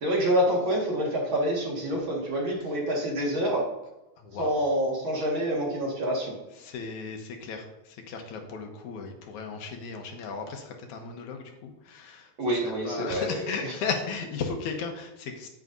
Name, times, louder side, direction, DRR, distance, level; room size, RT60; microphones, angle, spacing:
voice 1, 0.0-3.6 4.4-6.3 12.4-13.7, equal, 45° right, -3 dB, 2.3 m, -27 dB
voice 2, 4.2-4.6 6.6-15.5, left 5 dB, 75° left, 3 dB, 2.4 m, -36 dB
9.6 x 9.4 x 2.7 m, 0.97 s
omnidirectional pair, 3.5 m